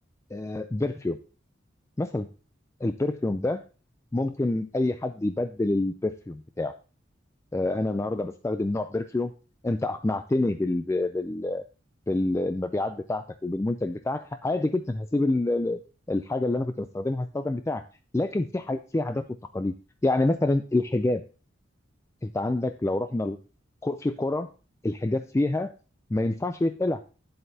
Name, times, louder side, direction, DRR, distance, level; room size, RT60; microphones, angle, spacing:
voice 1, 0.3-1.2 2.0-2.3 2.8-3.6 4.1-6.7 7.5-9.3 9.6-11.6 12.1-15.8 16.1-17.8 18.1-19.2 19.5-19.7 20.0-21.3 22.2-23.4 23.8-24.5 24.8-25.7 26.1-27.0, left 2 dB, 15° left, 9 dB, 0.3 m, -27 dB
9.9 x 7.7 x 2.7 m, 0.34 s
head